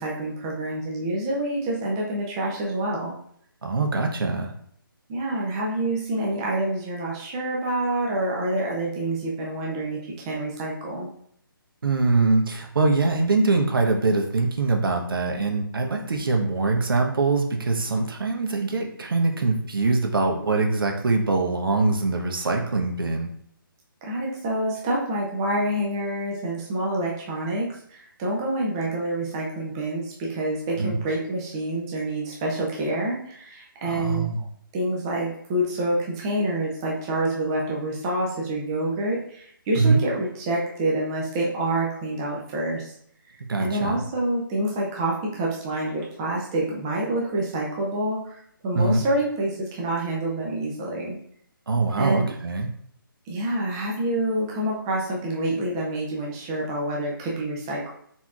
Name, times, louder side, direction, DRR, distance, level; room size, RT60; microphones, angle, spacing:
voice 1, 0.0-3.1 5.1-11.1 24.0-34.3 34.7-42.9 43.6-51.2 52.0-52.3 53.3-57.9, right 1 dB, 10° right, -3 dB, 0.4 m, -27 dB
voice 2, 3.6-4.5 11.8-23.3 30.8-31.0 33.8-34.4 39.7-40.0 43.5-44.0 48.7-49.0 51.7-52.7, right 3 dB, 70° right, 3 dB, 0.9 m, -23 dB
4.3 x 4.2 x 2.4 m, 0.66 s
hypercardioid pair, 165°, 12 cm